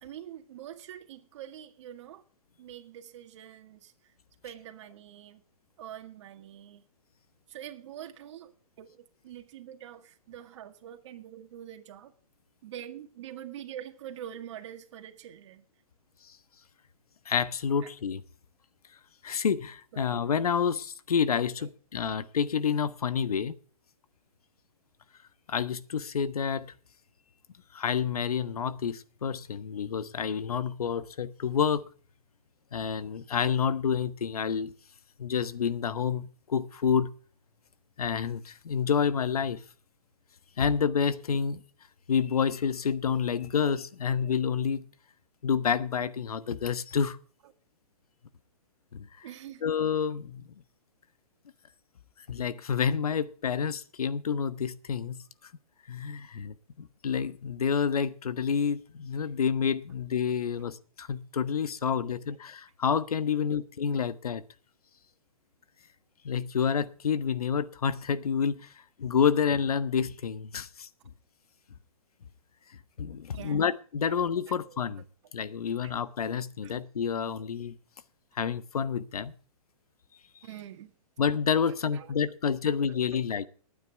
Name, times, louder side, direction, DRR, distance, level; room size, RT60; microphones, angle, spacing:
voice 1, 0.0-2.2 2.6-4.1 4.4-5.4 5.8-6.8 7.5-8.5 8.8-12.1 12.6-15.7 17.8-17.9 19.9-20.0 21.6-21.7 49.2-49.7 60.6-60.7 62.0-62.4 63.3-63.5 73.3-73.7 74.1-74.2 74.5-74.8 75.8-75.9 76.6-76.8 80.4-80.9 81.6-82.4 82.9-83.5, right 11 dB, 50° right, 2.0 m, -45 dB
voice 2, 17.3-18.2 19.2-23.5 25.5-26.7 27.7-31.9 32.7-34.7 35.2-37.1 38.0-39.6 40.6-41.6 42.1-44.9 45.4-47.2 48.9-49.3 49.6-50.5 52.3-55.2 55.9-64.4 66.2-68.6 69.0-70.9 73.0-75.0 75.3-77.7 78.4-79.3 81.2-83.5, left 7 dB, 85° left, 1.3 m, -29 dB
20.0 x 9.4 x 3.5 m
hypercardioid pair, 150°, 19 cm